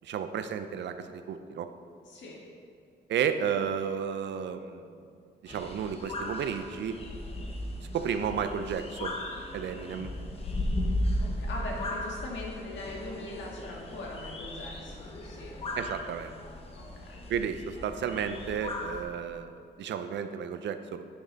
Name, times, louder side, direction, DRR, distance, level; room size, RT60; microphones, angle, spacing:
voice 1, 0.0-1.7 3.1-4.9 5.4-7.0 7.9-9.1 9.5-10.1 15.8-16.3 17.3-21.1, right 7 dB, 75° right, 9 dB, 0.5 m, -32 dB
voice 2, 2.1-2.4 11.2-15.6 16.8-17.3, left 2 dB, 85° left, -2 dB, 1.8 m, -41 dB
sound 1, 5.5-19.0, left 1 dB, 30° left, 0.9 m, -36 dB
9.6 x 6.4 x 4.0 m, 2.3 s
wide cardioid pair, 165°, 18 cm